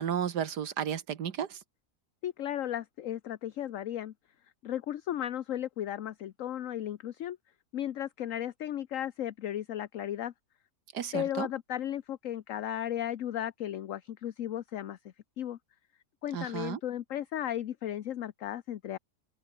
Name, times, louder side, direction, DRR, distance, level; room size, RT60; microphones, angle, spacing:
voice 1, 0.0-1.6 10.9-11.5 16.3-16.8, right 8 dB, 85° right, 1.9 m, -33 dB
voice 2, 2.2-4.1 4.6-7.4 7.7-10.3 11.1-15.0 15.4-15.6 16.2-19.0, left 11 dB, 60° left, 1.1 m, -35 dB
open air
omnidirectional pair, 1.7 m